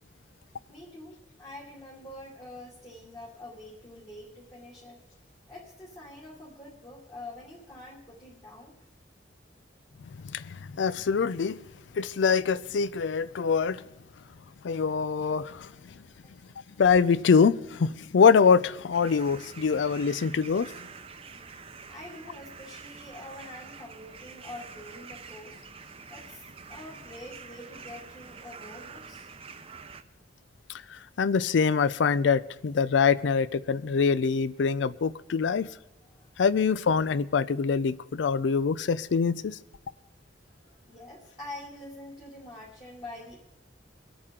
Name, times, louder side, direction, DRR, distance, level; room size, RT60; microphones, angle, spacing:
voice 1, 0.7-5.0 5.5-8.8 21.9-29.3 36.1-36.3 40.6-43.4, left 1 dB, 25° left, 2.5 m, -46 dB
voice 2, 10.3-11.6 11.9-13.8 14.6-15.7 16.8-20.7 30.7-35.7 36.4-39.6, left 5 dB, 70° left, 0.4 m, -24 dB
sound 1, 18.9-30.0, right 5 dB, 30° right, 0.7 m, -46 dB
23.5 x 8.6 x 3.7 m
head